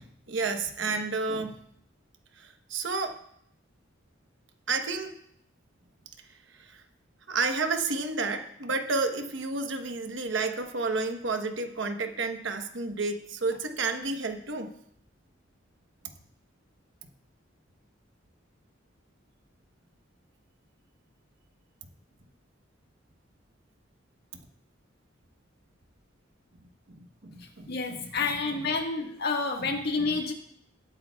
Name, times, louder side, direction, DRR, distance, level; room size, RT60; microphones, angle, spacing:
voice 1, 0.0-1.6 2.4-3.2 4.7-5.1 6.6-6.8 7.3-14.7 21.8-21.9 24.3-24.4 26.9-28.1 30.1-30.2, right 3 dB, 70° right, 7 dB, 1.1 m, -31 dB
voice 2, 27.7-30.3, left 4 dB, 55° left, 2 dB, 1.6 m, -29 dB
21.0 x 8.6 x 2.3 m, 0.72 s
head